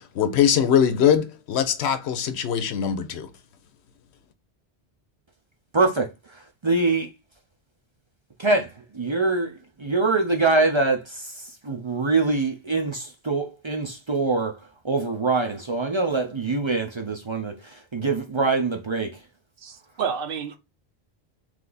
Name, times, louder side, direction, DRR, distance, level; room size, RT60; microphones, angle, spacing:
voice 1, 0.0-3.3, left 8 dB, 85° left, 0.9 m, -22 dB
voice 2, 5.7-7.1 8.4-19.2, right 3 dB, 35° right, 0.5 m, -24 dB
voice 3, 19.6-20.6, right 7 dB, 60° right, 0.8 m, -30 dB
3.4 x 3.3 x 3.9 m
omnidirectional pair, 1.1 m